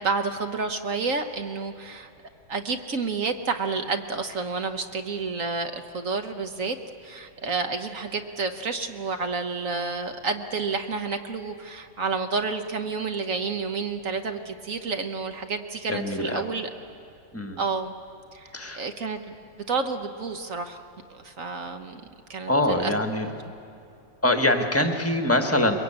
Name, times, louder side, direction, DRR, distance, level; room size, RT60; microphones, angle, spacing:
voice 1, 0.0-2.1 2.5-6.8 7.0-16.7 17.6-17.9 18.3-19.3 19.7-20.8 21.1-22.0 22.3-22.9, right 4 dB, 50° right, 7 dB, 1.1 m, -30 dB
voice 2, 15.9-16.5 17.3-17.6 18.5-18.8 22.5-23.3 24.2-25.7, left 1 dB, 10° left, 5 dB, 1.1 m, -24 dB
22.5 x 22.5 x 8.7 m, 2.5 s
omnidirectional pair, 2.2 m